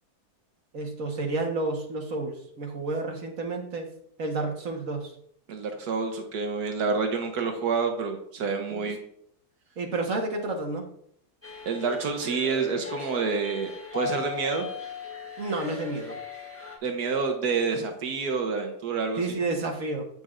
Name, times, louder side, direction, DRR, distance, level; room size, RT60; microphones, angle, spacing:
voice 1, 0.7-3.9 4.2-5.1 8.7-8.8 9.8-10.9 15.4-16.2 19.2-20.1, right 2 dB, 60° right, 2 dB, 1.7 m, -30 dB
voice 2, 5.5-9.0 11.6-14.7 16.8-19.4, right 5 dB, 75° right, 4 dB, 1.5 m, -28 dB
sound 1, 11.4-16.8, left 7 dB, 10° left, 1.2 m, -38 dB
9.2 x 6.8 x 2.5 m, 0.67 s
omnidirectional pair, 1.7 m